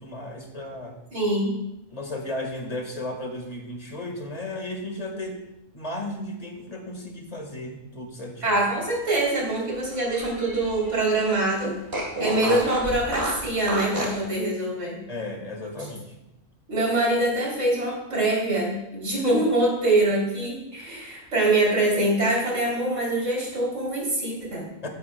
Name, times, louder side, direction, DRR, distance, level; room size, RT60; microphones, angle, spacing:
voice 1, 0.0-1.0 1.9-5.5 5.7-8.6 15.1-16.2 24.8-24.9, left 1 dB, 30° left, 2 dB, 1.8 m, -34 dB
voice 2, 1.1-1.5 8.4-11.7 12.2-15.0 16.7-24.7, right 2 dB, 65° right, -3 dB, 3.8 m, -24 dB
Fart, 8.9-11.0 11.3-11.4 11.9-14.2, right 1 dB, 45° right, 2.7 m, -31 dB
16.0 x 11.0 x 2.3 m, 0.89 s
omnidirectional pair, 1.4 m